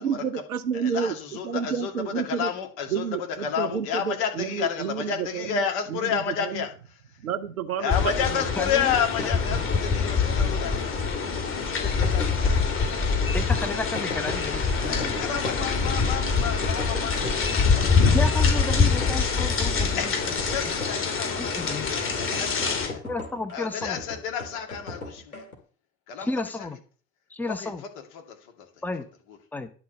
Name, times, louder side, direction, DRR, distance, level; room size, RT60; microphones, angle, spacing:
voice 1, 0.0-2.5 2.9-6.7 7.2-8.5, right 7 dB, 75° right, 0.9 m, -30 dB
voice 2, 0.9-1.9 2.2-3.0 3.4-6.7 7.8-11.0 11.6-13.4 14.9-18.2 19.9-23.0 23.5-25.4 26.1-26.3 27.6-27.7, left 7 dB, 55° left, 2.4 m, -31 dB
sound 1, 7.9-22.9, left 5 dB, 30° left, 3.2 m, -24 dB
voice 3, 8.6-9.0 13.3-15.9 18.1-20.1 21.4-21.9 23.0-24.0 26.2-26.8 27.3-27.8 28.8-29.1 29.5-29.7, left 2 dB, 5° left, 1.0 m, -32 dB
sound 2, 8.8-25.5, left 3 dB, 80° left, 2.1 m, -39 dB
10.5 x 4.7 x 6.6 m
figure-of-eight pair, 65°, 42 cm